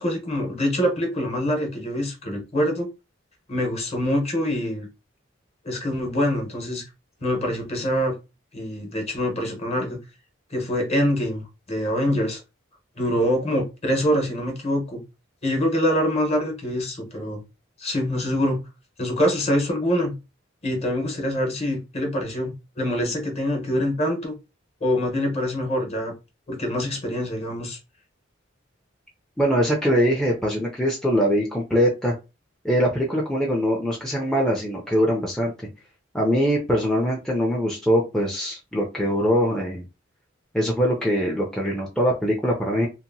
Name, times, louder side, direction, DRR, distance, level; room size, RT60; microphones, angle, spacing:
voice 1, 0.0-2.9 3.5-4.9 5.6-6.8 7.2-8.1 8.5-10.0 10.5-12.4 13.0-15.0 15.4-17.4 17.8-18.6 19.0-20.1 20.6-24.3 24.8-26.1 26.5-27.8, equal, 35° left, 2 dB, 1.0 m, -25 dB
voice 2, 29.4-32.1 32.6-35.5 36.1-39.8 40.5-42.9, equal, 5° left, -2 dB, 0.5 m, -22 dB
2.8 x 2.5 x 2.6 m, 0.27 s
head